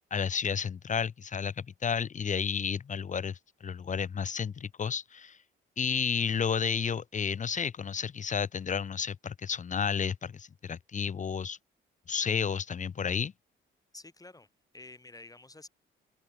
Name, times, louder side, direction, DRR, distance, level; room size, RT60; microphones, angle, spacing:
voice 1, 0.1-5.4 5.8-11.6 12.1-13.3, left 6 dB, 40° left, 1.0 m, -31 dB
voice 2, 13.9-14.5 14.7-15.7, left 2 dB, 20° left, 5.7 m, -49 dB
cardioid pair, 90°, 20 cm